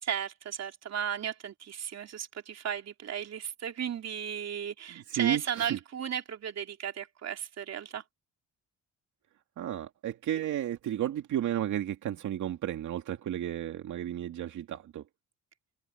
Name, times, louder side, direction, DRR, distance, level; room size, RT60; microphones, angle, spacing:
voice 1, 0.0-8.0, right 8 dB, 60° right, 3.1 m, -35 dB
voice 2, 4.9-5.8 9.6-15.0, right 11 dB, 75° right, 2.5 m, -33 dB
cardioid pair, 90°, 30 cm